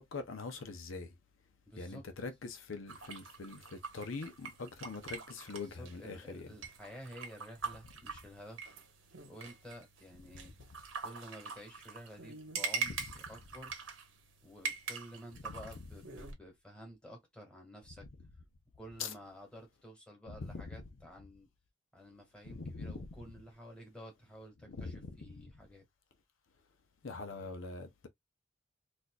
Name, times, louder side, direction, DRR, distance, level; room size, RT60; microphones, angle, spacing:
voice 1, 0.1-1.1 1.8-3.6 3.9-6.5 19.0-19.1 20.4-20.6 22.5-22.9 24.7-25.0 27.0-28.1, left 4 dB, 80° left, 0.7 m, -42 dB
voice 2, 1.7-2.1 5.6-8.6 9.3-10.5 11.0-13.8 14.4-18.1 18.8-21.5 21.9-25.8, equal, 5° left, 1.5 m, -51 dB
sound 1, 2.9-16.3, right 5 dB, 80° right, 1.0 m, -44 dB
4.2 x 2.5 x 2.3 m
head